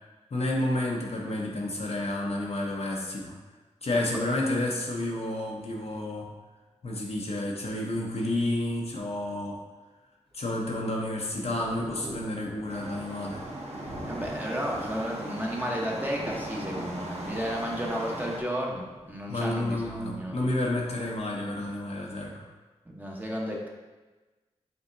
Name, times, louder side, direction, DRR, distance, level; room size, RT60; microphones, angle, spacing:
voice 1, 0.3-3.3 3.8-6.3 6.8-9.6 10.3-13.4 19.3-22.4, left 1 dB, 60° left, -2 dB, 0.8 m, -30 dB
Thunder / Rain, 10.3-22.2, right 1 dB, 40° right, 1.2 m, -47 dB
sound 1, 12.7-18.4, right 1 dB, 60° right, 0.8 m, -38 dB
voice 2, 14.0-20.4 22.9-23.7, equal, 15° right, -2 dB, 1.0 m, -33 dB
5.4 x 3.4 x 2.7 m, 1.2 s
cardioid pair, 45°, 12 cm